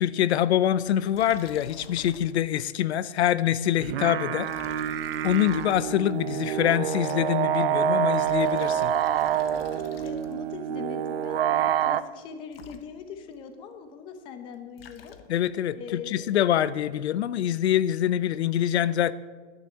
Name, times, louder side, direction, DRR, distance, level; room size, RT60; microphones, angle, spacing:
voice 1, 0.0-4.5 4.8-4.9 5.2-8.9 15.3-19.1, left 11 dB, 85° left, 18 dB, 0.7 m, -25 dB
Liquid, 1.1-2.6 2.9-3.0 4.4-6.3 7.9-10.6 12.2-12.3 12.5-13.3 14.5-15.6, left 8 dB, 65° left, 1.2 m, -48 dB
sound 1, 3.8-12.0, right 9 dB, 65° right, 0.7 m, -27 dB
voice 2, 9.9-15.2 15.7-16.4, left 6 dB, 15° left, 8 dB, 0.8 m, -41 dB
11.0 x 9.5 x 8.3 m, 1.4 s
supercardioid pair, 175°, 32 cm